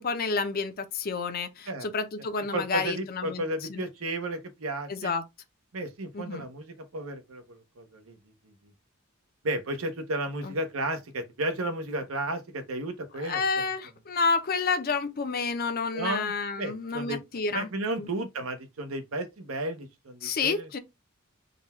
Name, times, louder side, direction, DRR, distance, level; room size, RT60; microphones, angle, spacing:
voice 1, 0.0-3.4 3.7-3.8 4.9-5.2 6.1-6.5 10.4-10.5 13.2-17.7 18.0-18.1 20.2-20.8, left 4 dB, 45° left, 0.6 m, -29 dB
voice 2, 2.5-5.1 5.7-8.2 9.4-13.7 15.9-16.3 16.6-17.2 17.5-20.7, right 1 dB, 80° right, 0.8 m, -33 dB
3.9 x 2.3 x 4.1 m
head